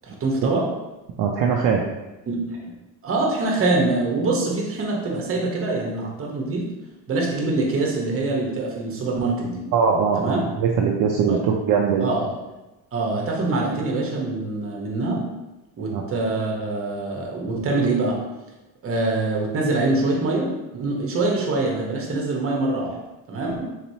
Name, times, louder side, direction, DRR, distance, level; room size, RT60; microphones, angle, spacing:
voice 1, 0.0-0.6 2.3-2.7 3.0-6.6 7.1-9.6 10.2-10.4 11.3-11.4 12.0-12.3 12.9-15.2 15.8-18.2 18.8-22.9 23.3-23.7, right 2 dB, 35° right, -1 dB, 0.9 m, -24 dB
voice 2, 1.2-1.8 9.7-12.1 15.9-16.0, right 6 dB, 60° right, 0 dB, 0.5 m, -21 dB
4.0 x 2.9 x 2.7 m, 1.0 s
cardioid pair, 145°, 38 cm